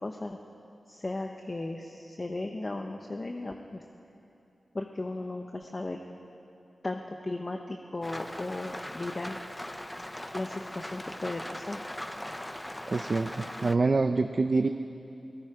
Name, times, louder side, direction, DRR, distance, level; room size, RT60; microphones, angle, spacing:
voice 1, 0.0-0.4 0.9-3.8 4.7-6.0 6.8-9.4 10.3-11.8, left 2 dB, 35° left, 3 dB, 1.0 m, -36 dB
Rain, 8.0-13.8, left 1 dB, 10° left, 0.7 m, -40 dB
voice 2, 12.9-14.7, right 3 dB, 45° right, 7 dB, 0.6 m, -26 dB
29.0 x 18.0 x 5.0 m, 2.8 s
wide cardioid pair, 100°, 0 cm